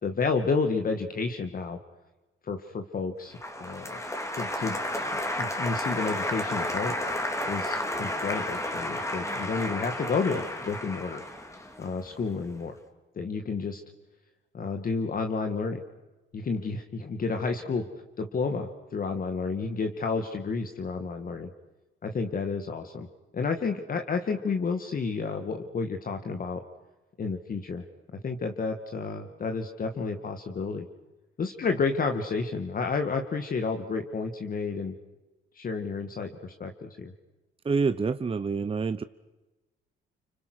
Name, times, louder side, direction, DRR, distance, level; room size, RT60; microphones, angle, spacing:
voice 1, 0.0-1.8 2.4-4.0 4.3-4.8 5.4-6.9 7.5-11.2 11.8-12.8 13.2-13.8 14.5-15.8 16.3-17.9 18.2-21.5 22.0-23.1 23.3-26.6 27.2-27.8 28.2-30.9 31.4-35.0 35.5-37.1, left 4 dB, 45° left, 5 dB, 2.1 m, -30 dB
Applause, 3.3-12.4, left 1 dB, 15° left, 3.1 m, -32 dB
voice 2, 37.6-39.0, right 4 dB, 30° right, 10 dB, 1.0 m, -27 dB
30.0 x 26.0 x 6.3 m, 1.1 s
cardioid pair, 90°, 20 cm